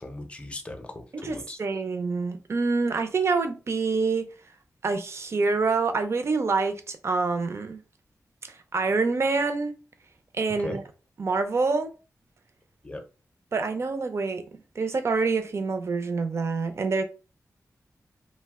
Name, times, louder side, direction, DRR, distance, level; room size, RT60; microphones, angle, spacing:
voice 1, 0.0-1.6 10.6-10.8 12.8-13.0, left 2 dB, 20° left, 0.5 m, -38 dB
voice 2, 1.2-4.3 4.8-7.8 8.7-9.7 10.4-10.8 11.2-11.9 13.5-14.4 14.8-17.0, right 4 dB, 50° right, 0.4 m, -26 dB
2.7 x 2.0 x 3.5 m
wide cardioid pair, 140°, 6 cm